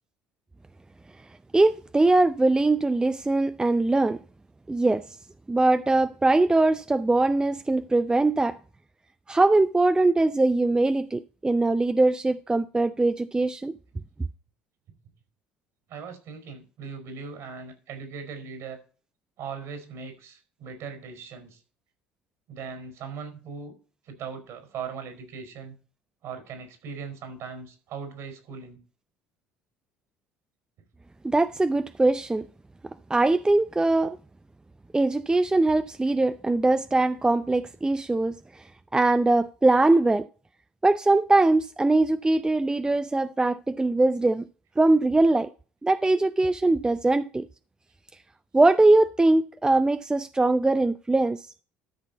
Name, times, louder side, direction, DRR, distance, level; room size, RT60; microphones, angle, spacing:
voice 1, 1.5-4.2 4.7-5.0 5.5-8.6 9.3-13.7 31.2-32.5 33.1-34.2 34.9-38.6 38.9-40.3 40.8-44.5 44.8-45.5 45.8-47.5 48.5-51.6, right 2 dB, 15° right, 0.5 m, -22 dB
voice 2, 15.9-18.8 19.4-21.6 22.5-23.8 24.0-25.7 26.2-28.8, right 6 dB, 60° right, 4.8 m, -39 dB
13.0 x 6.2 x 4.1 m
hypercardioid pair, 60°, 6 cm